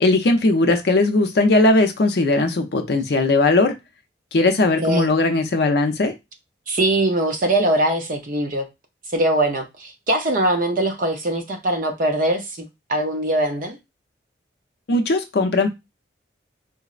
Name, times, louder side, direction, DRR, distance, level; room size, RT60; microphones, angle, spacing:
voice 1, 0.0-3.8 4.3-6.1 14.9-15.7, left 2 dB, 60° left, 0.5 m, -18 dB
voice 2, 4.8-5.2 6.7-8.7 9.1-13.8, right 1 dB, 45° right, 0.5 m, -22 dB
3.9 x 2.0 x 2.4 m
head